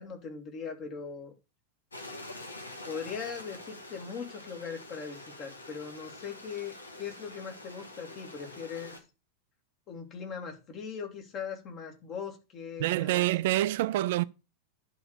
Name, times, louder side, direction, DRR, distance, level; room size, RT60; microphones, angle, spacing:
voice 1, 0.0-1.3 2.8-9.0 9.9-13.3, left 6 dB, 35° left, 2.3 m, -40 dB
Stream, 1.9-9.0, left 2 dB, 80° left, 1.6 m, -46 dB
voice 2, 12.8-14.2, right 15 dB, 50° right, 0.5 m, -26 dB
11.0 x 3.9 x 6.5 m
figure-of-eight pair, 90°, 0 cm